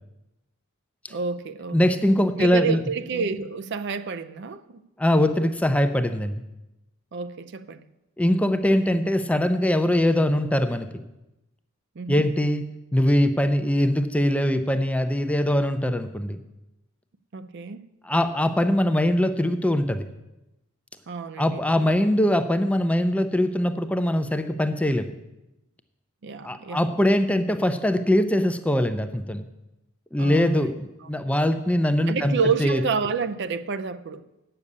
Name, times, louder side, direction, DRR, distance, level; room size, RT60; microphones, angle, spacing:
voice 1, 1.1-1.8 2.4-4.8 7.1-7.8 12.0-12.3 17.3-17.9 21.1-21.6 26.2-26.9 30.2-31.1 32.1-34.3, right 5 dB, 55° right, 0.5 m, -29 dB
voice 2, 1.7-2.8 5.0-6.4 8.2-10.9 12.1-12.6 12.9-16.4 18.0-20.1 21.4-25.1 26.4-29.5 30.1-32.8, left 1 dB, 5° left, 0.4 m, -22 dB
8.3 x 6.8 x 8.4 m
head